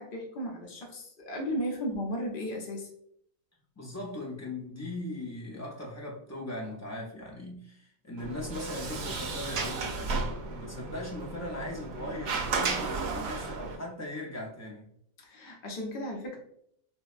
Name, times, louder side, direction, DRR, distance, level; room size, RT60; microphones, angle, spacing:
voice 1, 0.0-2.9 15.2-16.4, equal, 45° left, 0 dB, 0.9 m, -35 dB
voice 2, 3.8-14.9, left 1 dB, 25° left, -2 dB, 0.4 m, -39 dB
Sliding door, 8.2-13.7, right 4 dB, 65° right, 0.8 m, -34 dB
4.6 x 2.1 x 2.4 m, 0.70 s
omnidirectional pair, 1.4 m